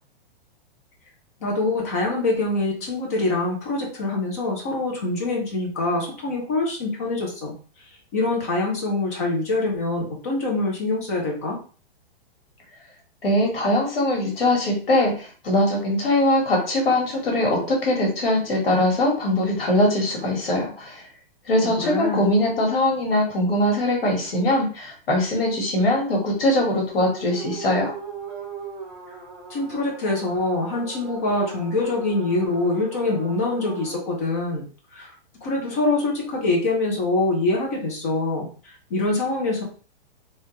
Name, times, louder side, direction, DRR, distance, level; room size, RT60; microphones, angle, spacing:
voice 1, 1.4-7.5 8.1-11.6 21.6-22.3 29.5-34.7 34.9-35.1 35.4-39.6, left 2 dB, 15° left, -1 dB, 0.5 m, -24 dB
voice 2, 13.2-21.0 21.5-27.9, left 1 dB, 70° left, 0 dB, 1.8 m, -21 dB
sound 1, 27.0-34.0 35.7-36.8, right 5 dB, 20° right, 0.8 m, -39 dB
3.3 x 2.8 x 3.1 m, 0.40 s
hypercardioid pair, 180°, 30 cm